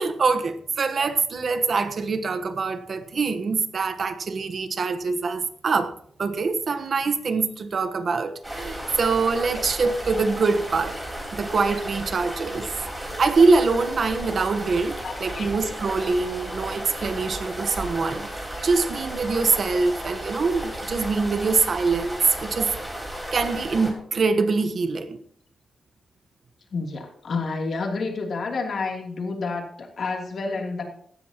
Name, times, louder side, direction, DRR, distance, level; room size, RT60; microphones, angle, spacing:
voice 1, 0.0-5.9 6.2-11.0 11.3-12.7 13.0-22.7 23.3-25.2, right 4 dB, 50° right, 1.1 m, -24 dB
sound 1, 8.4-23.9, right 1 dB, 10° right, 4.4 m, -34 dB
voice 2, 15.0-15.5 26.7-30.8, left 4 dB, 55° left, 3.0 m, -29 dB
17.5 x 13.5 x 3.0 m
wide cardioid pair, 135°, 0 cm